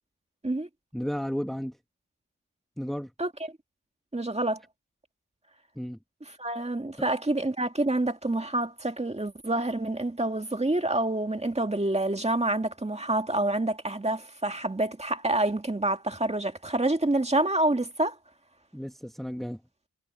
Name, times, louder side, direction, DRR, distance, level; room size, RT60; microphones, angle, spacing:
voice 1, 0.9-1.8 2.8-3.1 5.8-6.0 18.7-19.6, equal, ahead, 1.2 m, -33 dB
voice 2, 4.1-4.6 6.3-18.2, right 2 dB, 20° right, 2.2 m, -27 dB
wide cardioid pair, 95°, 32 cm